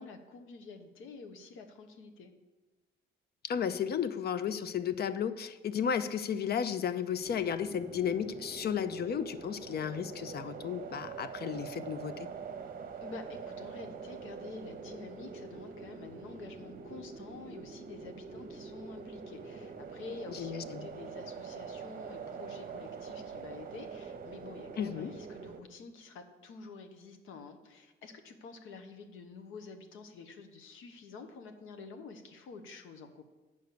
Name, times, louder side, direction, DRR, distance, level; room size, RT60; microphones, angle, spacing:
voice 1, 0.0-2.3 13.0-33.2, left 4 dB, 90° left, 6 dB, 1.0 m, -48 dB
voice 2, 3.4-12.1 20.3-20.9 24.8-25.1, left 8 dB, 55° left, 13 dB, 0.6 m, -33 dB
sound 1, 7.2-25.6, right 5 dB, 45° right, 0.8 m, -44 dB
8.1 x 5.2 x 6.8 m, 1.2 s
cardioid pair, 90°, 20 cm